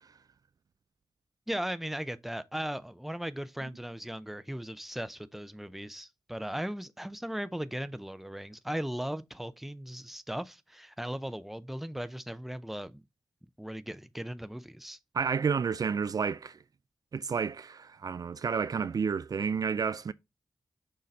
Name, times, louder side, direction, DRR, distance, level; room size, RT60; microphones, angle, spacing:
voice 1, 1.5-13.0 13.6-15.0, equal, 5° right, 0.5 m, -37 dB
voice 2, 15.1-16.6 17.1-20.1, right 6 dB, 60° right, 0.3 m, -30 dB
6.5 x 3.9 x 4.1 m
cardioid pair, 65°, 7 cm